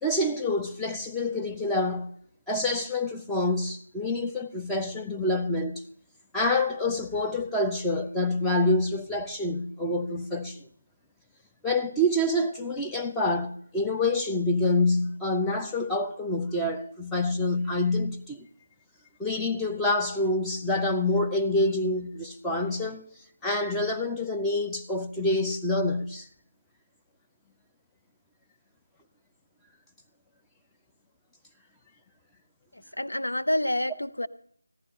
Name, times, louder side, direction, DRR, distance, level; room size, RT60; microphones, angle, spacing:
voice 1, 0.0-2.1 2.5-5.9 6.3-10.7 11.6-18.5 19.2-23.1 23.4-26.3, left 2 dB, 5° left, 0.5 m, -27 dB
voice 2, 32.7-34.3, left 1 dB, 80° left, 0.9 m, -28 dB
14.5 x 11.5 x 5.4 m
figure-of-eight pair, 165°, 0 cm